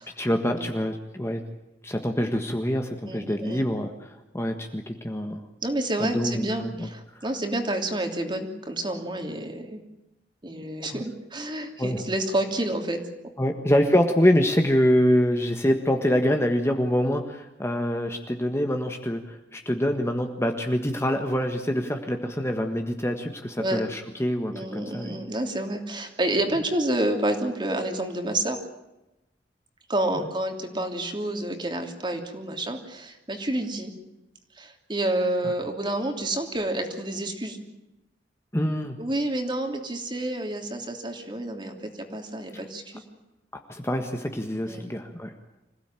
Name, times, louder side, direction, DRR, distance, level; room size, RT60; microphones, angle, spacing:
voice 1, 0.2-1.4 1.8-5.4 6.0-6.9 7.1-7.2 10.9-11.0 11.8-12.0 13.4-25.2 35.4-35.5 38.5-39.0 43.7-45.3, equal, 15° left, 4 dB, 1.5 m, -25 dB
voice 2, 3.1-3.6 5.6-9.8 10.4-13.0 23.6-23.8 24.5-28.6 29.9-33.9 34.6-37.6 39.0-43.0 44.7-44.8, right 1 dB, 25° right, 4 dB, 3.1 m, -29 dB
26.0 x 16.5 x 9.1 m, 0.96 s
head